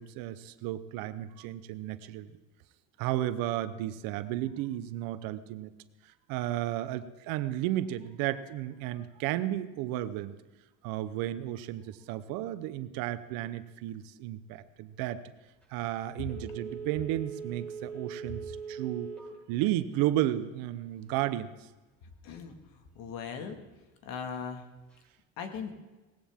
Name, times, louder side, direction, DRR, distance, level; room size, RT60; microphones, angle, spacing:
voice 1, 0.0-2.3 3.0-5.7 6.0-10.4 10.8-15.2 15.7-21.7, right 13 dB, 90° right, 13 dB, 0.9 m, -33 dB
Telephone, 16.2-19.4 19.8-19.9, right 6 dB, 5° left, 5.1 m, -40 dB
voice 2, 22.2-22.6 23.0-23.6 24.0-24.6 25.4-25.7, left 6 dB, 75° left, 6 dB, 2.1 m, -38 dB
18.5 x 16.0 x 3.7 m, 1.2 s
cardioid pair, 130°, 34 cm